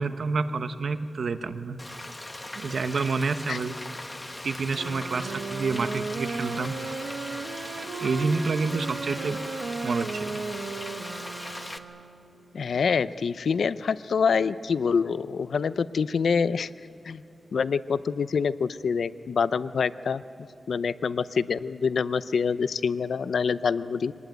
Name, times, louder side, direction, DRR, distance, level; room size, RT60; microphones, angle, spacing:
voice 1, 0.0-1.8 2.6-3.7 4.4-6.8 8.0-9.4 9.8-10.4, right 4 dB, 60° right, 10 dB, 0.9 m, -28 dB
Frying (food), 1.8-11.8, left 1 dB, 15° left, 0.9 m, -39 dB
sound 1, 4.7-12.4, right 4 dB, 85° right, 1.3 m, -35 dB
voice 2, 12.5-16.7 17.0-17.2 17.5-20.2 20.7-24.1, left 6 dB, 70° left, 15 dB, 0.5 m, -26 dB
24.0 x 19.5 x 9.2 m, 2.6 s
wide cardioid pair, 170°, 0 cm